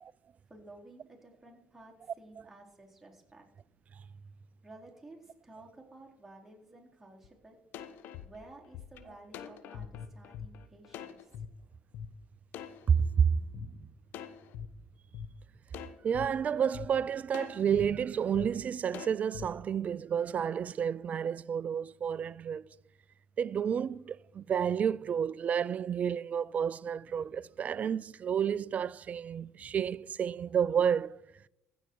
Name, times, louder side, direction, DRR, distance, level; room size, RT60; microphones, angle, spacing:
voice 1, 0.5-3.5 4.6-7.6 8.2-11.3, right 2 dB, 10° right, 4.0 m, -53 dB
sound 1, 7.2-7.3 7.7-11.5 11.9-12.1 12.5-13.7 14.1-14.7 15.1-15.3 15.7-16.3 16.7-16.9 17.3-17.9 18.3-18.5 18.9-19.5, left 8 dB, 70° left, 1.0 m, -43 dB
voice 2, 12.9-13.7 16.0-22.7 23.4-31.2, right 7 dB, 45° right, 0.4 m, -30 dB
15.5 x 8.0 x 4.7 m
hypercardioid pair, 60°, 4 cm